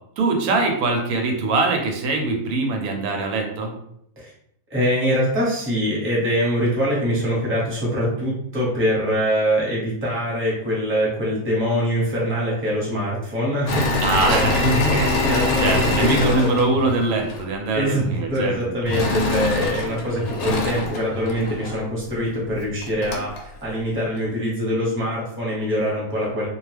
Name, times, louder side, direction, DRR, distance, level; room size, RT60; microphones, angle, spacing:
voice 1, 0.2-3.7 14.0-15.2 15.5-18.6 18.8-18.9, right 3 dB, 85° right, 3 dB, 1.1 m, -22 dB
voice 2, 4.7-13.9 14.3-14.9 15.2-16.3 17.7-26.5, equal, 10° right, -6 dB, 0.9 m, -23 dB
Engine / Mechanisms, 13.7-17.5 18.9-21.8 22.5-22.6 22.8-23.4, left 2 dB, 85° left, 1.1 m, -24 dB
2.4 x 2.3 x 3.2 m, 0.72 s
omnidirectional pair, 1.5 m